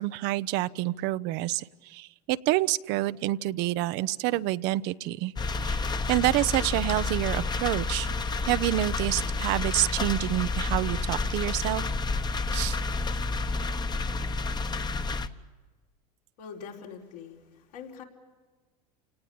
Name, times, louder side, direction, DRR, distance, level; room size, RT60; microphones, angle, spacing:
voice 1, 0.0-5.3 5.6-5.8 6.1-8.1 8.5-11.8 12.5-12.8, right 16 dB, 60° right, 16 dB, 0.8 m, -28 dB
sound 1, 5.4-15.3, left 3 dB, 20° left, 1.2 m, -30 dB
voice 2, 16.4-18.0, left 6 dB, 80° left, 0 dB, 4.7 m, -43 dB
28.5 x 18.5 x 8.7 m, 1.4 s
hypercardioid pair, 100°, 20 cm